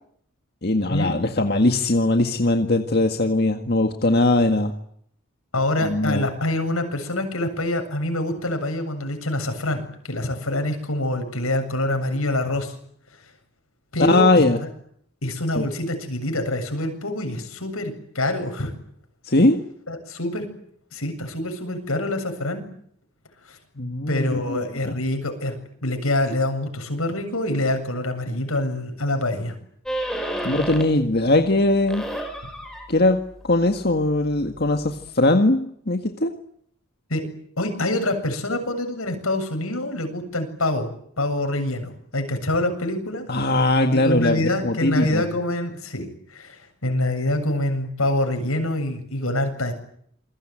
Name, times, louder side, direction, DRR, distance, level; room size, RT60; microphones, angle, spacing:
voice 1, 0.6-4.7 5.8-6.3 14.0-14.6 15.6-15.7 19.3-19.6 23.8-25.0 30.4-32.0 32.9-36.3 43.3-45.2, left 2 dB, 50° left, 5 dB, 1.9 m, -20 dB
voice 2, 5.5-12.7 13.9-14.7 15.2-18.7 19.9-20.5 20.9-22.6 23.5-23.6 24.1-29.6 37.1-37.2 37.6-40.9 41.2-43.3 43.9-49.7, left 1 dB, 85° left, 6 dB, 7.6 m, -25 dB
sound 1, 29.9-31.1 31.5-35.1, right 1 dB, 5° left, 5.8 m, -33 dB
29.0 x 22.0 x 9.1 m, 0.67 s
head